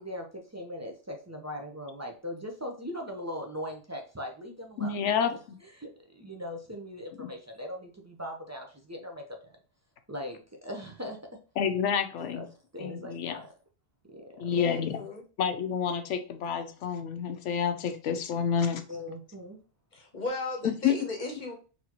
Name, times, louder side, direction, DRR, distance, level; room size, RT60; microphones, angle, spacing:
voice 1, 0.0-4.9 5.2-5.3 5.8-9.2 10.1-11.2 12.2-12.5 12.7-13.5 14.1-14.6 18.9-19.6, left 1 dB, 20° right, 1 dB, 0.4 m, -40 dB
voice 2, 4.8-5.3 7.2-7.3 11.6-12.5 12.8-13.4 14.4-15.0 15.4-18.8 20.6-20.9, left 7 dB, 85° left, 8 dB, 0.9 m, -29 dB
voice 3, 14.5-15.2 19.9-21.5, left 2 dB, 45° left, 2 dB, 0.9 m, -35 dB
4.1 x 2.8 x 2.9 m, 0.36 s
omnidirectional pair, 1.2 m